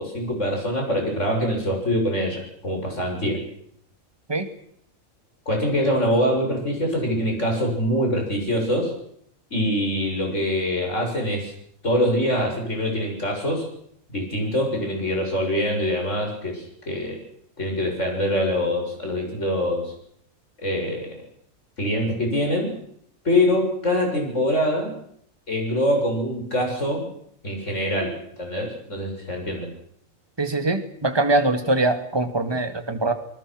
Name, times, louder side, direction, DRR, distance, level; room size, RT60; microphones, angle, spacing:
voice 1, 0.0-3.4 5.5-8.9 9.5-11.5 11.8-13.6 14.1-17.2 17.6-19.9 20.6-21.1 21.8-22.7 23.2-24.9 25.5-27.0 27.4-28.1 28.4-29.7, equal, 60° left, 1 dB, 7.5 m, -24 dB
voice 2, 30.4-33.1, right 2 dB, 20° right, 7 dB, 1.9 m, -22 dB
28.5 x 20.0 x 6.2 m, 0.70 s
omnidirectional pair, 1.4 m